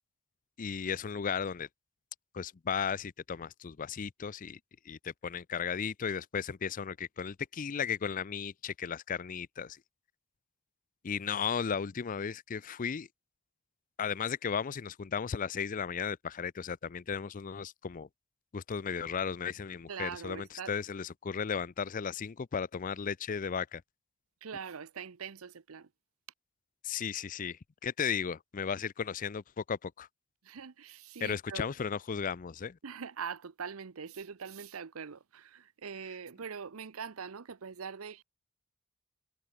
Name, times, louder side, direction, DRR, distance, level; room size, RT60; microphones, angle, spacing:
voice 1, 0.6-1.7 2.3-4.6 4.9-9.8 11.0-13.1 14.0-18.1 18.5-23.8 26.8-30.1 31.2-32.8, left 6 dB, 40° left, 0.4 m, -35 dB
voice 2, 19.9-20.7 24.4-25.9 30.4-31.7 32.8-38.2, right 6 dB, 90° right, 0.7 m, -42 dB
head